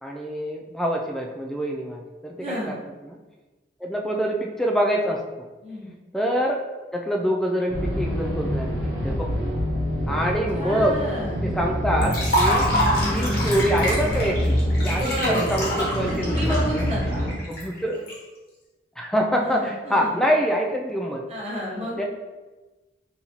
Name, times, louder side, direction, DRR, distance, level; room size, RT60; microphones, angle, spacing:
voice 1, 0.0-3.2 3.8-5.5 6.1-6.6 6.9-9.3 10.1-11.0 11.4-12.7 13.1-16.9 17.5-18.0 19.0-21.3 22.0-22.1, equal, ahead, 0 dB, 0.3 m, -25 dB
voice 2, 2.4-2.7 5.6-5.9 10.5-11.4 15.0-15.5 16.0-17.2 19.4-20.2 21.3-22.0, equal, 30° right, -6 dB, 1.0 m, -31 dB
sound 1, 7.7-17.3, equal, 60° right, 1.1 m, -26 dB
Liquid, 12.0-18.1, equal, 50° left, 1.1 m, -26 dB
4.0 x 2.7 x 2.9 m, 1.2 s
head